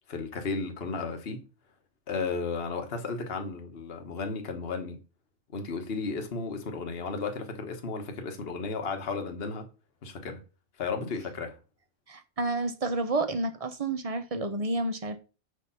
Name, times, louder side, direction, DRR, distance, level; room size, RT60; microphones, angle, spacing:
voice 1, 0.1-1.4 2.1-5.0 5.5-9.7 10.0-10.4 10.8-11.6, left 4 dB, 50° left, 1.4 m, -34 dB
voice 2, 12.1-15.2, right 2 dB, 30° right, 0.8 m, -30 dB
6.7 x 5.1 x 5.4 m
omnidirectional pair, 1.4 m